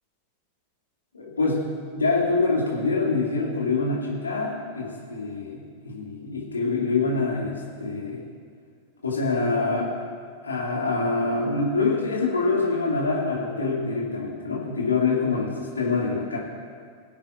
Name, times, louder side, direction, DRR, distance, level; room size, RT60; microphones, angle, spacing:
voice 1, 1.1-8.2 9.0-9.9 10.4-16.4, left 3 dB, 75° left, -3 dB, 2.4 m, -25 dB
22.0 x 8.4 x 2.6 m, 2.1 s
figure-of-eight pair, 90°, 0 cm